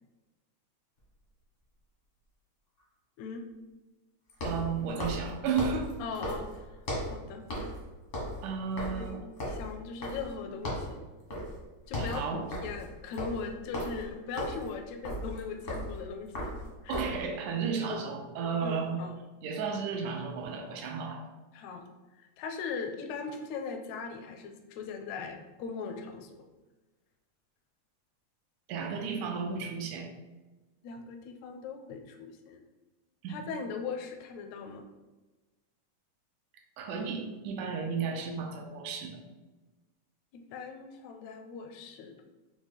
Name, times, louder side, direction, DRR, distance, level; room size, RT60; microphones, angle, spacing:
sound 1, 1.0-1.1 4.3-7.2 7.5-7.8 8.1-10.4 10.6-11.0 11.3-11.6 11.8-17.2, equal, 65° left, 0.7 m, -36 dB
voice 1, 4.4-5.9 8.4-9.3 12.0-12.5 16.9-19.0 19.4-21.2 28.7-30.1 33.2-33.4 36.8-39.2, right 5 dB, 85° right, 2 dB, 2.1 m, -33 dB
voice 2, 6.0-6.8 7.1-7.5 9.0-11.0 11.9-16.5 16.8-17.0 17.8-18.1 18.6-19.2 21.5-21.8 22.2-26.4 30.8-32.6 33.3-34.9 40.3-42.2, left 5 dB, 80° left, 4 dB, 1.7 m, -39 dB
6.1 x 2.2 x 3.4 m, 1.2 s
omnidirectional pair, 3.5 m